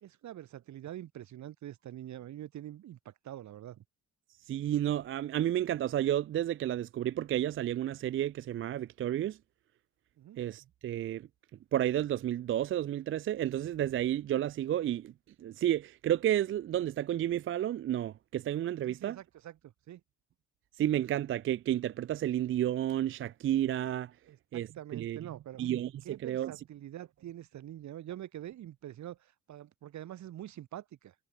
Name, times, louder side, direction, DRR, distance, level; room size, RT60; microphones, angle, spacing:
voice 1, 0.0-3.8 10.2-10.4 18.9-20.0 24.3-25.6 26.0-31.1, right 12 dB, 70° right, 1.6 m, -45 dB
voice 2, 4.5-9.4 10.4-11.3 11.7-15.1 15.4-19.2 20.8-24.2 24.5-25.2 25.6-25.9 26.2-26.5, right 12 dB, 45° right, 0.4 m, -31 dB
cardioid pair, 90°, 30 cm